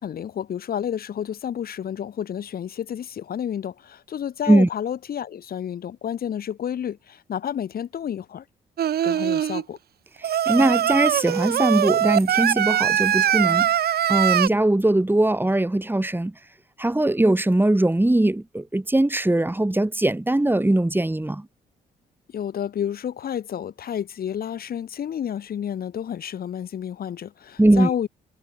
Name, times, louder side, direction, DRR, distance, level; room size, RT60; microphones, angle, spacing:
voice 1, 0.0-8.5 9.0-9.8 22.3-28.1, left 9 dB, 50° left, 3.7 m, -30 dB
Singing, 8.8-9.6 10.2-14.5, right 10 dB, 55° right, 3.9 m, -22 dB
voice 2, 10.2-16.3 16.8-21.5 27.6-27.9, right 1 dB, 10° right, 4.6 m, -21 dB
figure-of-eight pair, 40°, 20 cm